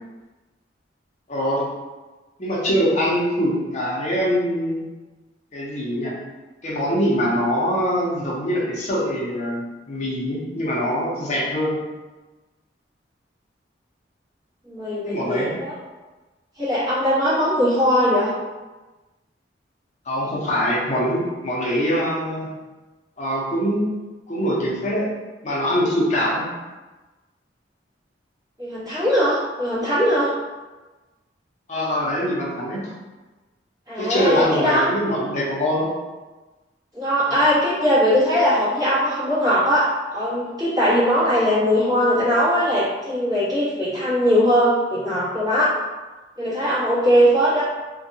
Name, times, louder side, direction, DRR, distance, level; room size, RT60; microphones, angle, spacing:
voice 1, 1.3-1.6 2.4-4.9 5.5-6.1 6.6-9.6 9.9-11.8 15.0-15.5 20.1-22.5 23.2-23.9 24.3-25.1 25.4-26.5 31.7-32.9 34.0-35.9 37.3-37.4, equal, 40° left, -5 dB, 0.7 m, -23 dB
voice 2, 14.7-15.7 16.6-18.3 28.6-30.3 33.9-34.9 36.9-39.9 40.1-45.7 46.4-47.6, equal, 20° right, -11 dB, 1.2 m, -20 dB
2.6 x 2.2 x 2.6 m, 1.2 s
head